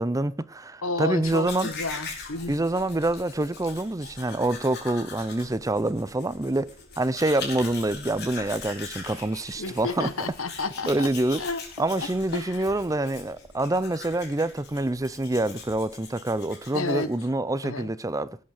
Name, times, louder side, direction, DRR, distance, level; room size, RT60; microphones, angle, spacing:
voice 1, 0.0-1.7 2.5-6.7 7.0-10.1 10.9-11.4 11.8-18.4, right 2 dB, 15° right, 0.5 m, -26 dB
voice 2, 0.8-2.6 9.5-11.1 11.4-11.6 12.3-12.7 16.7-17.1 17.6-17.9, left 3 dB, 85° left, 1.4 m, -31 dB
Domestic sounds home sounds, 1.2-17.2, left 4 dB, 55° left, 4.4 m, -41 dB
18.5 x 8.7 x 5.0 m
head